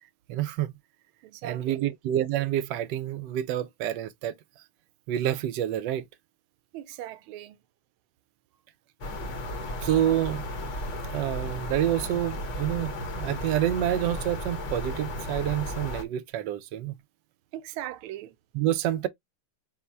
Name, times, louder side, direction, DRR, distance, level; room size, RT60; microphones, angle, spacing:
voice 1, 0.3-0.8 1.4-4.4 5.1-6.1 9.8-10.4 11.1-17.0 18.5-19.1, right 12 dB, 70° right, 1.2 m, -28 dB
voice 2, 1.2-2.0 6.7-7.6 17.5-18.4, right 13 dB, 85° right, 1.4 m, -39 dB
sound 1, 9.0-16.0, left 1 dB, 50° left, 0.9 m, -34 dB
4.2 x 2.1 x 4.5 m
omnidirectional pair, 2.3 m